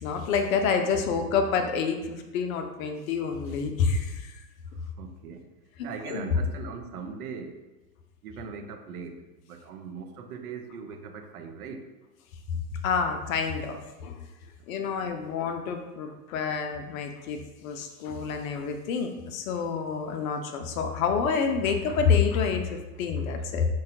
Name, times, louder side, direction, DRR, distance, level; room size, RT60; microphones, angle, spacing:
voice 1, 0.0-4.2 6.1-6.3 12.8-14.2 14.7-23.7, left 5 dB, 60° left, 5 dB, 0.5 m, -28 dB
voice 2, 4.7-5.5 5.8-7.6 8.2-11.9 14.8-14.9, right 5 dB, 65° right, 6 dB, 0.5 m, -40 dB
3.1 x 2.2 x 2.7 m, 1.1 s
hypercardioid pair, 90°, 49 cm